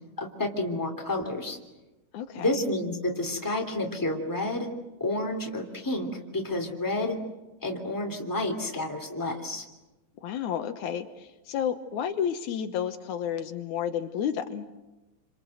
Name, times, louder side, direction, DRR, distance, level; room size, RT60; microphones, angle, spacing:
voice 1, 0.2-1.6 2.3-4.7 5.0-6.1 6.3-7.2 7.6-9.6, left 2 dB, 5° left, 2 dB, 2.8 m, -30 dB
voice 2, 2.1-2.5 10.2-14.7, left 8 dB, 75° left, 8 dB, 2.5 m, -31 dB
28.0 x 26.5 x 7.9 m, 1.1 s
omnidirectional pair, 3.5 m